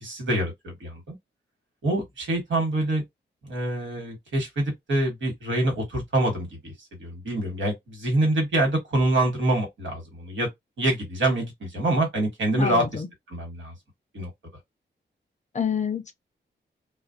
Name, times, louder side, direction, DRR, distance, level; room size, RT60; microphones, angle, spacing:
voice 1, 0.0-1.2 1.8-3.0 3.5-10.5 10.8-13.0 13.3-13.7 14.1-14.3, right 1 dB, 80° right, 1.4 m, -26 dB
voice 2, 12.6-13.1 15.5-16.1, left 7 dB, 40° left, 0.5 m, -27 dB
2.4 x 2.1 x 2.6 m
wide cardioid pair, 105°, 19 cm